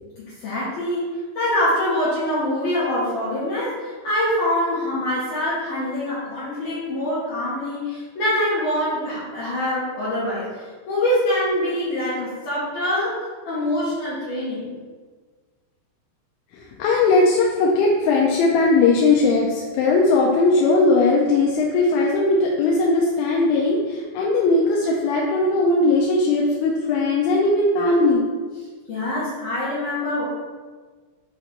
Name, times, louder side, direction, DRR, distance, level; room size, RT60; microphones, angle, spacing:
voice 1, 0.3-14.7 28.9-30.2, left 1 dB, 65° left, -11 dB, 2.5 m, -24 dB
voice 2, 16.5-28.2, left 3 dB, 80° left, -2 dB, 2.8 m, -19 dB
7.8 x 3.0 x 4.3 m, 1.5 s
omnidirectional pair, 5.8 m